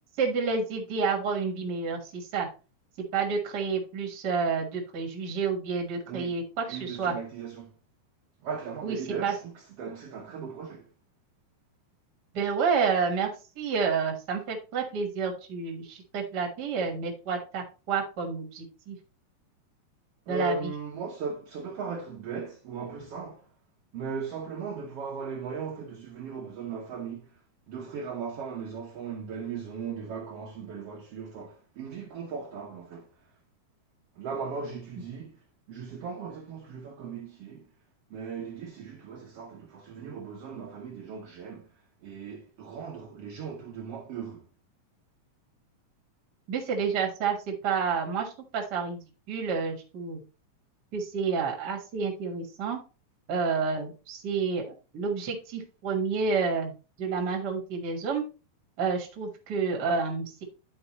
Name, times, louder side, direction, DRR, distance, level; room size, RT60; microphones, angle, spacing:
voice 1, 0.2-2.5 3.1-7.1 8.8-9.0 9.2-9.3 12.3-13.3 13.5-19.0 20.3-20.7 46.5-50.2 50.9-52.8 53.3-58.2 58.8-60.4, right 5 dB, 45° right, 1.4 m, -29 dB
voice 2, 6.1-6.4 6.7-7.7 8.4-10.9 20.3-23.5 23.9-27.4 27.7-33.1 34.1-37.7 38.1-44.5, right 5 dB, 70° right, 1.4 m, -38 dB
11.0 x 4.5 x 3.0 m
omnidirectional pair, 3.9 m